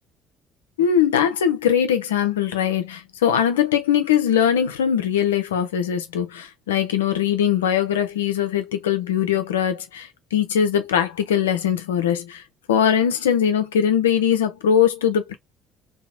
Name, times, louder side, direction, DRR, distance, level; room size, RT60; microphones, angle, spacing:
voice 1, 0.8-12.4 12.7-15.3, left 9 dB, 75° left, 0.5 m, -21 dB
2.8 x 2.2 x 2.5 m
figure-of-eight pair, 55°, 0 cm